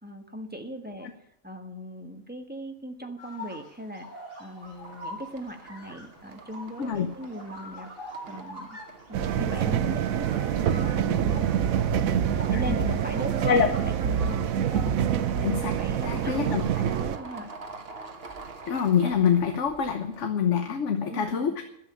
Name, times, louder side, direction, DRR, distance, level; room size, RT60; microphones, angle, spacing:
voice 1, 0.0-1.1 1.4-7.9 8.3-8.8 9.1-13.5 13.8-14.5 15.6-17.5 21.0-21.6, equal, 5° right, 4 dB, 1.4 m, -39 dB
sound 1, 3.2-14.9, equal, 40° left, 5.8 m, -44 dB
sound 2, 4.6-20.2, right 3 dB, 45° right, 1.5 m, -47 dB
voice 2, 6.8-7.1 12.5-12.8 13.4-13.7 15.4-15.7 16.0-16.6 18.7-21.6, left 7 dB, 60° left, 6 dB, 1.2 m, -25 dB
sound 3, 9.1-17.2, right 9 dB, 80° right, 1.1 m, -26 dB
11.5 x 7.7 x 9.8 m, 0.79 s
omnidirectional pair, 1.4 m